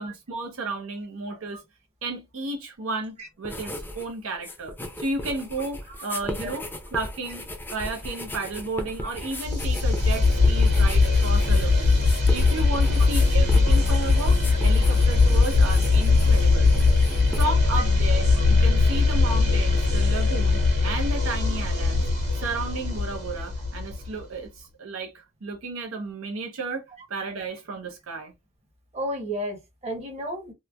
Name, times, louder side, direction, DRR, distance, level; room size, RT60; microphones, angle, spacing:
voice 1, 0.0-1.6 2.0-12.0 12.3-16.8 17.3-22.1 22.3-26.8 27.1-28.3, right 3 dB, 75° right, 0.6 m, -33 dB
sound 1, 3.4-4.1 4.3-17.4, left 1 dB, 10° left, 0.5 m, -37 dB
sound 2, 9.4-24.2, left 3 dB, 55° right, 1.7 m, -20 dB
voice 2, 28.9-30.5, equal, 30° right, 0.9 m, -33 dB
3.0 x 2.1 x 2.3 m
head